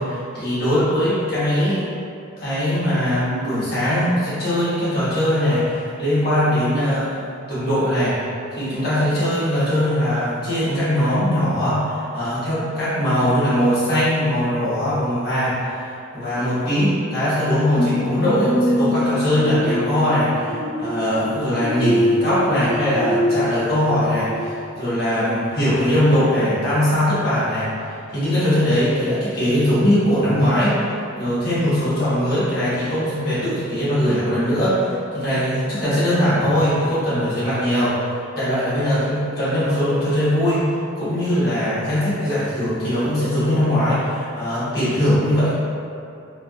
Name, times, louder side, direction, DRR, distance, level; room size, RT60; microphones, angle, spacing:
voice 1, 0.0-1.9 2.4-7.1 7.5-8.3 8.5-38.1 38.3-40.7 40.9-45.5, equal, 50° left, -12 dB, 1.5 m, -21 dB
sound 1, 17.8-25.1 25.6-25.7, equal, 10° right, 1.1 m, -24 dB
3.3 x 3.3 x 2.4 m, 2.6 s
head